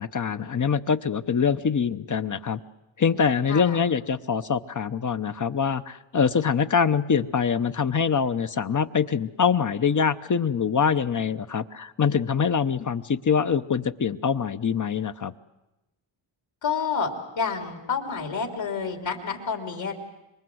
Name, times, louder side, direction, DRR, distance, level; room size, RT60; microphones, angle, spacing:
voice 1, 0.0-2.6 3.0-15.3, left 6 dB, 40° left, 11 dB, 0.8 m, -24 dB
voice 2, 3.5-3.8 16.6-17.1 17.4-19.9, left 5 dB, 70° left, 3 dB, 3.7 m, -29 dB
26.0 x 23.0 x 7.9 m, 0.98 s
wide cardioid pair, 105°, 48 cm